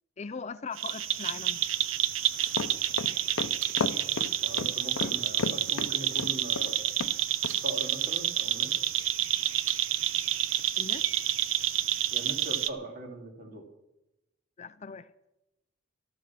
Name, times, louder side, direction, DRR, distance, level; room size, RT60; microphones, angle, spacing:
voice 1, 0.2-1.6 10.8-11.1 14.6-15.1, left 5 dB, 35° left, 13 dB, 0.5 m, -40 dB
sound 1, 0.8-12.7, right 11 dB, 75° right, 0.8 m, -29 dB
sound 2, 2.5-6.7 7.0-7.1 7.4-7.6, left 4 dB, 90° left, 0.7 m, -33 dB
voice 2, 3.7-6.9 7.6-8.7 12.1-13.6, right 1 dB, 45° right, 2 dB, 3.2 m, -41 dB
13.5 x 12.5 x 6.0 m, 0.93 s
head